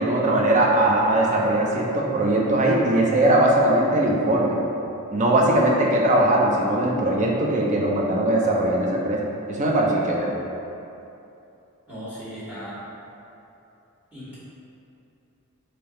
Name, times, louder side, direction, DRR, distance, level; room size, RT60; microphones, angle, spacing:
voice 1, 0.0-4.6 5.1-9.2 9.5-10.3, right 1 dB, 35° right, -2 dB, 0.5 m, -20 dB
voice 2, 11.9-12.8 14.1-14.4, equal, 5° right, -12 dB, 1.2 m, -37 dB
3.3 x 2.7 x 4.1 m, 2.9 s
head